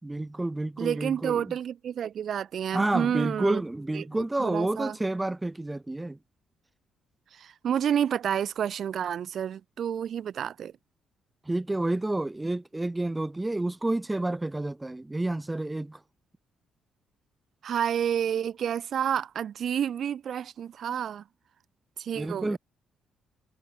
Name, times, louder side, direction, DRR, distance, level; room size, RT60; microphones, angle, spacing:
voice 1, 0.0-1.5 2.7-6.2 11.5-16.0 22.2-22.6, right 2 dB, 15° right, 4.2 m, -29 dB
voice 2, 0.8-3.6 3.9-5.0 7.3-10.7 17.6-21.2 22.0-22.6, right 9 dB, 60° right, 3.7 m, -29 dB
cardioid pair, 90°, 0 cm